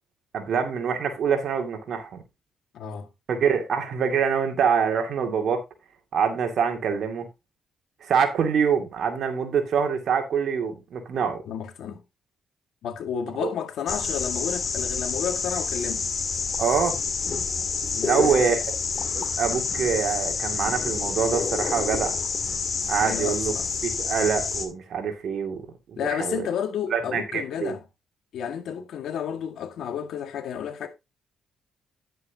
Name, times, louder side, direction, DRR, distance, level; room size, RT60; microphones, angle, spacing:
voice 1, 0.3-2.2 3.3-5.6 6.1-7.3 8.0-11.4 13.4-13.5 16.6-17.0 18.1-18.7 19.1-22.2 22.9-23.6 23.8-25.6 25.9-26.5 26.9-27.7, right 6 dB, 60° right, 2.4 m, -25 dB
voice 2, 2.7-3.1 11.2-12.0 12.8-16.1 17.9-18.5 23.0-23.7 26.0-27.8 28.3-30.9, left 8 dB, 75° left, 1.9 m, -32 dB
sound 1, 13.9-24.7, left 5 dB, 40° left, 2.2 m, -28 dB
10.0 x 7.8 x 2.8 m
cardioid pair, 90°, 0 cm